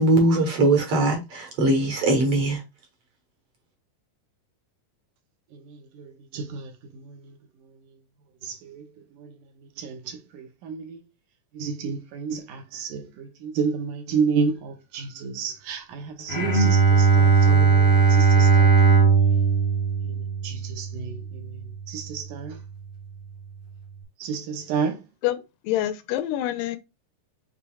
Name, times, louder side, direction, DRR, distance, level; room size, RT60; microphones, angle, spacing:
voice 1, 0.0-2.6, right 2 dB, 55° right, 1.9 m, -21 dB
voice 2, 5.5-7.4 7.6-7.8 8.4-9.4 9.6-11.0 11.5-19.4 20.0-22.6 24.2-25.0, right 5 dB, 75° right, 2.2 m, -31 dB
Bowed string instrument, 16.3-21.6, right 5 dB, 40° left, 0.7 m, -18 dB
voice 3, 25.2-26.8, left 13 dB, 80° left, 2.1 m, -27 dB
6.9 x 3.2 x 2.4 m
omnidirectional pair, 4.0 m